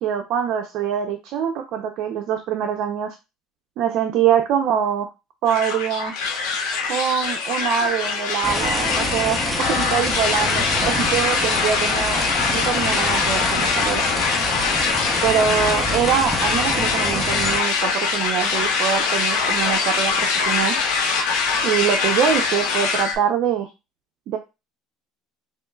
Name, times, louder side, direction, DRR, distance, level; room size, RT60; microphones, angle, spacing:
voice 1, 0.0-3.1 3.8-5.1 5.4-6.1 6.9-12.3 12.5-14.0 15.2-20.7 21.6-23.7 24.3-24.4, right 8 dB, 60° right, 5 dB, 0.6 m, -23 dB
sound 1, 5.5-23.2, left 5 dB, 80° left, 1.0 m, -23 dB
sound 2, 8.4-17.6, left 1 dB, 5° left, 0.6 m, -27 dB
5.1 x 3.1 x 2.3 m, 0.26 s
cardioid pair, 130°, 0 cm